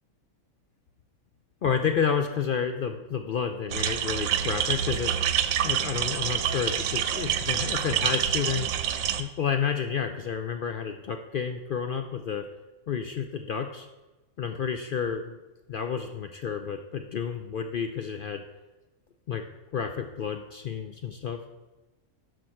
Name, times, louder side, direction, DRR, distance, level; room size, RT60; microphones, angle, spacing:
voice 1, 1.6-5.1 5.6-8.7 9.2-12.5 12.9-13.9 14.4-15.4 15.7-18.4 19.3-19.5 19.7-21.4, left 7 dB, 65° left, 6 dB, 0.5 m, -30 dB
sound 1, 3.7-9.2, right 9 dB, 85° right, 1.0 m, -27 dB
12.5 x 4.6 x 4.4 m, 1.1 s
omnidirectional pair, 1.4 m